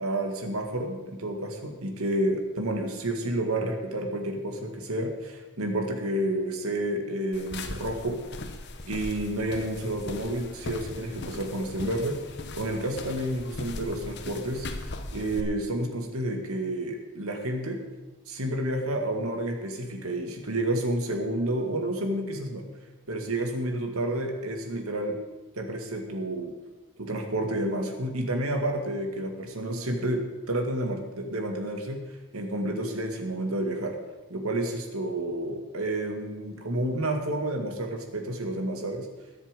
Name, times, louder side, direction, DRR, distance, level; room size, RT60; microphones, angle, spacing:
voice 1, 0.0-8.2 8.8-12.2 12.5-14.7 15.1-17.8 18.3-22.6 23.1-25.2 25.6-26.6 27.0-32.0 32.3-34.0 34.3-39.1, right 1 dB, 80° right, 4 dB, 2.0 m, -30 dB
sound 1, 7.3-15.4, left 2 dB, 50° left, 1.1 m, -39 dB
21.0 x 7.2 x 5.2 m, 1.1 s
head